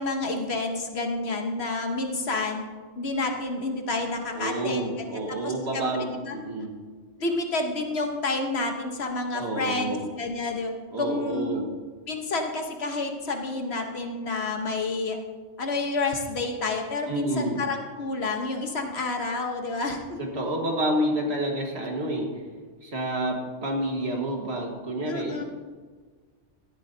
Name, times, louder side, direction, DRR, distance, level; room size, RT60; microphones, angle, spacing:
voice 1, 0.0-2.6 3.0-5.1 5.4-6.4 7.2-10.7 11.0-11.7 12.1-15.2 15.6-20.2 25.1-25.4, left 3 dB, 60° left, 4 dB, 1.4 m, -29 dB
voice 2, 4.3-6.7 9.3-10.1 10.9-11.7 17.1-17.7 20.2-22.3 22.8-25.4, right 1 dB, 60° right, 1 dB, 1.9 m, -29 dB
16.5 x 11.0 x 2.8 m, 1.5 s
omnidirectional pair, 1.3 m